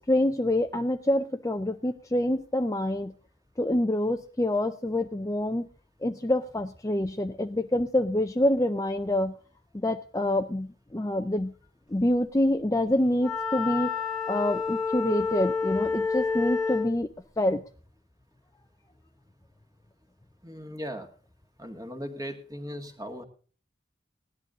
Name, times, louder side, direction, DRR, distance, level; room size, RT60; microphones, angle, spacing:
voice 1, 0.0-3.1 3.6-5.7 6.0-9.4 9.7-11.5 11.9-13.9 14.3-17.1 17.4-17.6, left 1 dB, 15° left, 8 dB, 0.5 m, -26 dB
Wind instrument woodwind instrument, 13.2-16.9, left 5 dB, ahead, 2.2 m, -29 dB
voice 2, 20.4-21.1 21.6-23.2, equal, 20° right, 6 dB, 2.0 m, -38 dB
17.5 x 11.0 x 3.8 m, 0.40 s
head